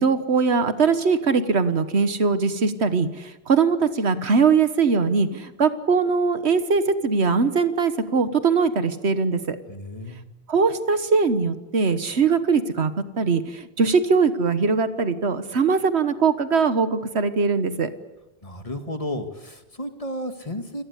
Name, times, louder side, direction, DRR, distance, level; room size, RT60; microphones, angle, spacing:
voice 1, 0.0-9.6 10.5-17.9, right 5 dB, 80° right, 11 dB, 1.6 m, -21 dB
voice 2, 9.7-10.2 18.4-20.8, left 1 dB, 35° left, 7 dB, 2.1 m, -33 dB
28.5 x 18.0 x 8.2 m, 1.0 s
omnidirectional pair, 1.1 m